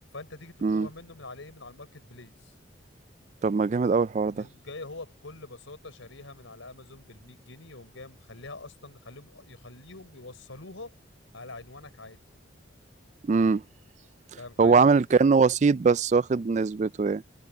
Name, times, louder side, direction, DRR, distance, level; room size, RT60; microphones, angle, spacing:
voice 1, 0.1-2.5 4.3-11.0 11.3-12.2 14.4-14.9, left 2 dB, 90° left, 4.6 m, -45 dB
voice 2, 3.4-4.4 13.2-13.6 14.6-17.2, right 4 dB, 35° right, 0.3 m, -22 dB
head